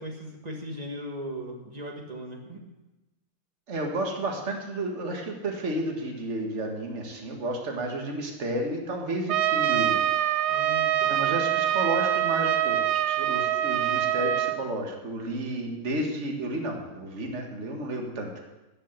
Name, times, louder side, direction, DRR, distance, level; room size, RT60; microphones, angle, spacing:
voice 1, 0.0-2.6 10.5-11.3, equal, 25° right, 2 dB, 1.9 m, -38 dB
voice 2, 3.7-10.1 11.1-18.3, right 1 dB, 45° right, 2 dB, 2.0 m, -32 dB
Trumpet, 9.3-14.6, right 12 dB, 85° right, 1.2 m, -25 dB
13.5 x 6.6 x 8.9 m, 1.0 s
omnidirectional pair, 1.7 m